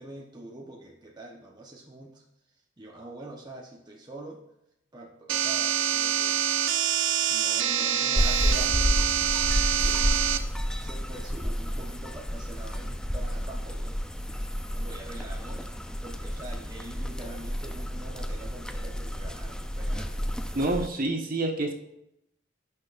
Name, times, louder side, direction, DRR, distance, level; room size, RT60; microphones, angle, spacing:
voice 1, 0.0-2.2 2.8-4.4 4.9-6.5 7.3-9.2 9.8-10.3 10.8-14.0 14.8-15.7 16.0-20.9, right 1 dB, 20° right, -2 dB, 1.0 m, -44 dB
sound 1, 5.3-10.4, right 9 dB, 75° right, 0.6 m, -26 dB
sound 2, 8.2-20.9, equal, 5° left, 0.5 m, -30 dB
voice 2, 20.5-21.7, right 2 dB, 50° right, 0 dB, 1.4 m, -27 dB
15.5 x 6.4 x 2.5 m, 0.83 s
head